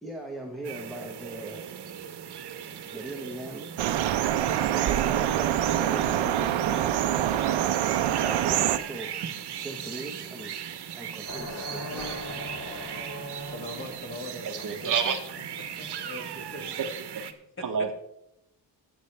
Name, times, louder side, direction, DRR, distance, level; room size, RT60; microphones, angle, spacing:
voice 1, 0.0-1.7 2.8-3.7 4.7-9.1 9.6-10.6 10.9-12.1, right 1 dB, ahead, 0 dB, 1.0 m, -40 dB
sound 1, 0.6-17.3, right 9 dB, 60° right, 1.1 m, -39 dB
sound 2, 3.8-8.8, right 11 dB, 85° right, 0.7 m, -25 dB
sound 3, 11.2-14.1, equal, 45° left, 3.6 m, -38 dB
voice 2, 13.4-14.9 15.6-16.9 17.6-17.7, left 1 dB, 25° left, 2 dB, 2.2 m, -41 dB
voice 3, 14.4-15.5 17.1-17.2 17.6-17.9, right 6 dB, 45° right, 6 dB, 0.9 m, -29 dB
21.5 x 8.1 x 3.3 m, 0.84 s
wide cardioid pair, 170°, 45 cm